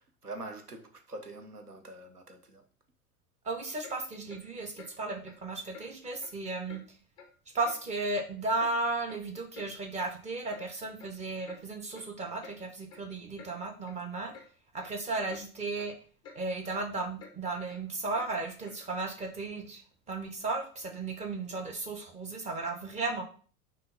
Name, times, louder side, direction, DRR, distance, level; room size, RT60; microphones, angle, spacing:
voice 1, 0.0-2.6, right 2 dB, 85° right, 0.8 m, -44 dB
voice 2, 3.4-6.8 7.5-14.3 14.7-15.9 16.3-19.8 20.1-23.2, right 3 dB, 15° right, 0.7 m, -35 dB
Clock, 3.8-4.0 4.3-4.4 4.8-4.9 5.3-5.4 5.7-5.9 6.2-6.4 6.7-6.8 7.2-7.3 7.7-7.8 8.1-8.7 9.1-9.2 9.5-9.7 10.0-10.2 10.5-10.7 11.0-11.1 11.5-11.6 11.9-12.1 12.4-12.6 12.9-13.0 13.4-13.5 13.9-14.0 14.3-14.5 14.8-15.0 15.3-15.4 15.8-15.9 16.2-16.4 16.7-16.8 17.2-17.3 17.7-17.8 18.1-18.3 18.7-18.8, left 5 dB, 10° left, 0.3 m, -50 dB
5.5 x 2.2 x 3.8 m
figure-of-eight pair, 85°, 44 cm